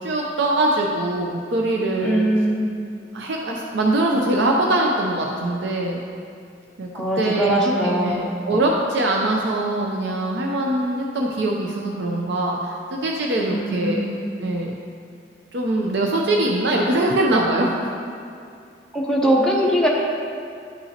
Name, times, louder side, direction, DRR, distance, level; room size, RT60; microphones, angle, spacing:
voice 1, 0.0-2.3 3.1-6.0 6.8-6.9 7.2-14.1 14.4-14.7 15.5-17.7, right 1 dB, 70° right, -1 dB, 0.6 m, -22 dB
voice 2, 2.0-2.7 6.9-8.2 13.5-14.1 18.9-19.9, right 1 dB, 5° left, -4 dB, 0.8 m, -21 dB
10.5 x 5.7 x 2.8 m, 2.4 s
head